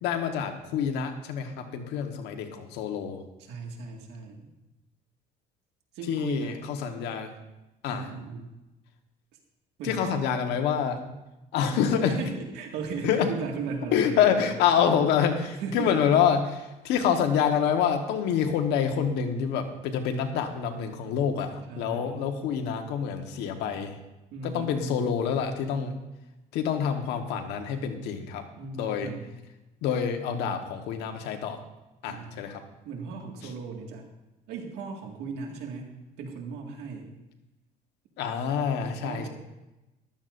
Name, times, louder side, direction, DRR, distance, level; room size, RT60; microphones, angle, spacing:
voice 1, 0.0-3.2 6.1-7.3 7.8-8.1 9.8-11.0 11.5-12.1 13.0-13.3 13.9-23.9 24.4-25.9 26.5-28.4 28.7-29.1 29.8-31.6 32.0-32.6 38.2-39.3, left 8 dB, 90° left, 5 dB, 1.4 m, -27 dB
voice 2, 3.4-4.5 5.9-6.6 7.9-8.5 9.8-10.2 11.7-14.5 15.6-16.0 21.6-22.2 24.3-25.1 28.6-29.3 30.3-30.6 32.1-32.4 32.8-34.1 34.5-37.1 39.0-39.3, right 5 dB, 90° right, 2 dB, 2.0 m, -37 dB
14.5 x 12.5 x 2.6 m, 1.0 s
cardioid pair, 110°, 17 cm